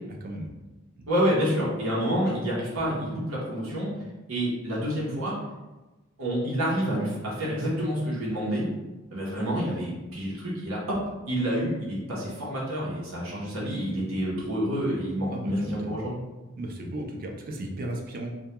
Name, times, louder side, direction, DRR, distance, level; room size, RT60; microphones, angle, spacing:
voice 1, 0.2-0.5 1.0-1.1 15.3-16.0 16.6-18.4, right 1 dB, 45° right, 2 dB, 0.4 m, -35 dB
voice 2, 1.1-3.9 4.3-5.3 6.2-8.7 9.1-11.0 11.3-16.2, equal, 80° right, -6 dB, 0.7 m, -28 dB
2.2 x 2.2 x 2.8 m, 1.1 s
head